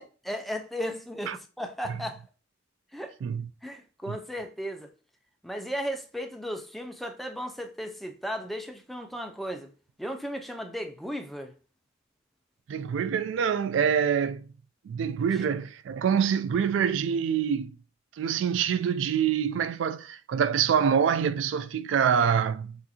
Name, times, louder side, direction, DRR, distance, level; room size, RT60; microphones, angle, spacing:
voice 1, 0.0-2.2 2.9-3.2 3.6-4.9 5.4-9.7 10.0-11.5 15.4-15.5, equal, ahead, 0.4 m, -35 dB
voice 2, 12.7-14.5 14.9-17.8 18.2-22.8, right 7 dB, 75° right, 0.3 m, -26 dB
5.9 x 2.6 x 2.8 m
head